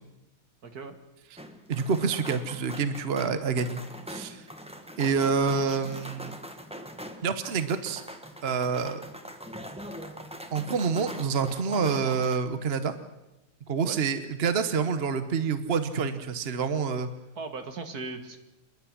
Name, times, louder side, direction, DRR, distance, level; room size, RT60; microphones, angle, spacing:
voice 1, 0.6-1.0 13.8-14.0 17.4-18.4, right 3 dB, 65° right, 7 dB, 2.2 m, -38 dB
Cloggers clogging in Lincoln Nebraska, 1.4-12.4, equal, 5° right, 1.3 m, -42 dB
voice 2, 1.7-3.8 4.1-4.4 5.0-6.3 7.2-8.0 8.4-9.0 10.5-12.9 13.7-17.1, right 5 dB, 40° right, 11 dB, 1.1 m, -27 dB
27.0 x 10.5 x 10.0 m, 0.98 s
omnidirectional pair, 1.8 m